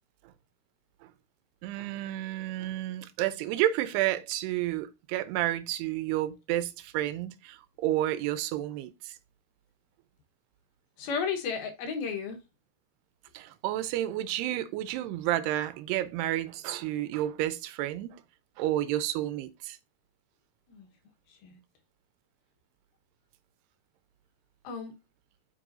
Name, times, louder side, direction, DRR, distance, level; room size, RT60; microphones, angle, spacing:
voice 1, 1.6-9.2 13.3-18.2 18.6-19.8, right 14 dB, 85° right, 2.6 m, -31 dB
voice 2, 11.0-12.4 20.7-20.9 21.4-21.6 24.6-24.9, left 6 dB, 70° left, 2.9 m, -33 dB
7.7 x 6.0 x 2.6 m
omnidirectional pair, 4.8 m